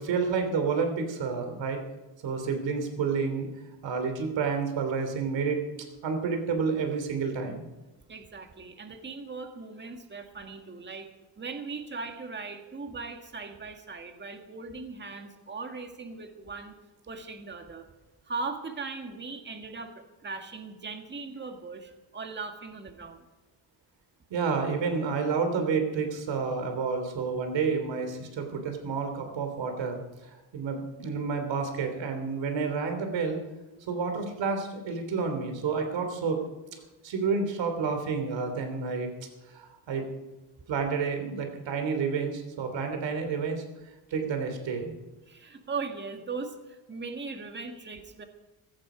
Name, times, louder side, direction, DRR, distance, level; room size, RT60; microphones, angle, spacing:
voice 1, 0.0-1.8 2.2-3.5 3.8-5.6 6.0-7.7 24.3-33.4 33.9-36.4 37.0-39.1 39.5-40.1 40.7-43.6 44.1-44.9, right 5 dB, 65° right, 6 dB, 3.4 m, -30 dB
voice 2, 8.1-11.1 11.4-16.8 17.1-17.9 18.3-23.3 45.3-48.2, right 4 dB, 20° right, 5 dB, 1.8 m, -39 dB
16.0 x 14.5 x 5.1 m, 1.1 s
cardioid pair, 125°, 48 cm